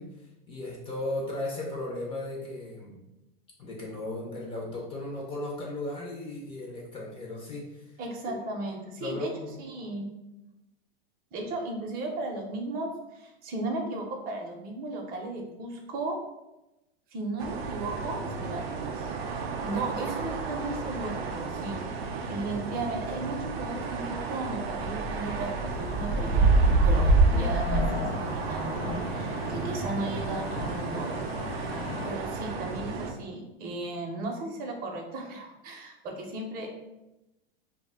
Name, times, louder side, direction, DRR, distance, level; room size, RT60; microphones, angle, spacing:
voice 1, 0.0-3.0 3.6-8.0 8.3-8.4 9.0-9.5 19.7-20.1, left 2 dB, 20° left, -3 dB, 0.4 m, -36 dB
voice 2, 8.0-9.3 9.6-10.1 11.3-16.2 17.1-19.2 19.6-31.2 31.5-31.6 32.0-36.7, right 2 dB, 30° right, 2 dB, 0.5 m, -36 dB
sound 1, 17.4-33.1, right 3 dB, 85° right, 0.5 m, -29 dB
sound 2, 25.7-32.1, left 3 dB, 80° left, 0.6 m, -37 dB
2.1 x 2.0 x 3.4 m, 0.98 s
supercardioid pair, 125°, 30 cm